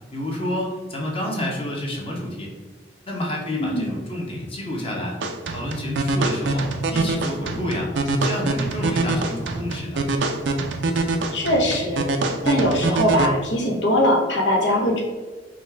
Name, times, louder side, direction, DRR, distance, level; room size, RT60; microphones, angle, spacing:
voice 1, 0.1-2.5 3.1-5.2 5.5-7.9 8.2-10.0, left 1 dB, 30° left, -2 dB, 0.9 m, -29 dB
voice 2, 3.6-3.9 11.3-12.0 12.4-15.0, equal, 85° left, 0 dB, 0.9 m, -21 dB
sound 1, 5.2-13.3, right 2 dB, 80° right, 0.4 m, -24 dB
5.0 x 2.3 x 3.3 m, 1.4 s
head